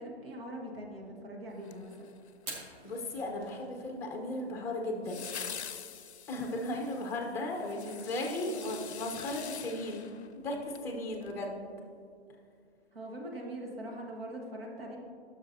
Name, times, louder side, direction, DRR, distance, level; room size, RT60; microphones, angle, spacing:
voice 1, 0.0-2.2 12.9-15.0, right 1 dB, 60° right, 0 dB, 1.5 m, -42 dB
sound 1, 1.6-2.5 5.0-10.9 11.2-11.3, left 8 dB, 90° left, 0.5 m, -45 dB
Fire, 2.3-11.5, right 2 dB, 20° right, 1.0 m, -54 dB
voice 2, 2.8-5.3 6.3-10.1 10.3-11.6, left 1 dB, 10° left, 1 dB, 0.7 m, -36 dB
11.0 x 6.2 x 2.7 m, 2.3 s
hypercardioid pair, 135°, 32 cm